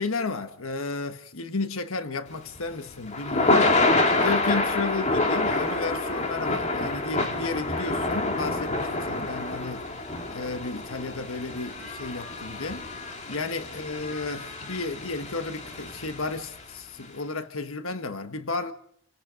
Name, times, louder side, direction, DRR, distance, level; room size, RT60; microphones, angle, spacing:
voice 1, 0.0-9.9 10.3-12.8 13.3-18.7, left 3 dB, 85° left, 1.4 m, -33 dB
Thunder / Rain, 2.4-16.6, left 2 dB, 35° left, 2.8 m, -27 dB
28.5 x 17.5 x 5.2 m
head